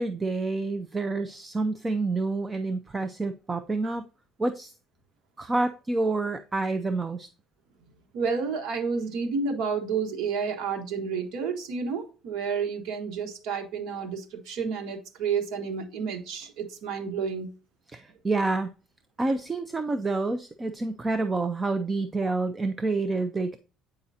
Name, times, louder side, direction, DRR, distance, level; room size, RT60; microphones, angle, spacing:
voice 1, 0.0-4.0 4.4-4.7 5.4-7.3 17.9-18.7 19.2-23.6, right 3 dB, 15° right, 10 dB, 0.4 m, -28 dB
voice 2, 8.1-17.5, right 5 dB, 80° right, 3 dB, 1.3 m, -30 dB
8.4 x 4.8 x 2.7 m, 0.35 s
cardioid pair, 160°, 0 cm